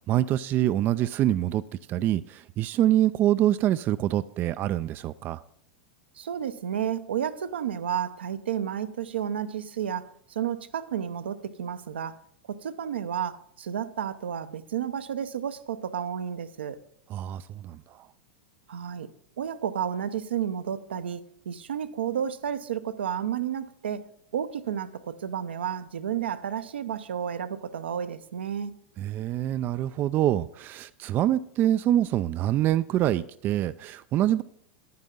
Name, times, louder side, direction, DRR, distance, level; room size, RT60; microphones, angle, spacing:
voice 1, 0.1-1.6 1.9-5.4 17.1-18.0 29.0-34.4, right 12 dB, 35° right, 0.3 m, -25 dB
voice 2, 6.2-12.2 12.5-16.8 18.7-19.1 19.4-24.1 24.3-28.7, right 9 dB, 75° right, 0.6 m, -31 dB
10.5 x 9.5 x 3.7 m
hypercardioid pair, 95°, 6 cm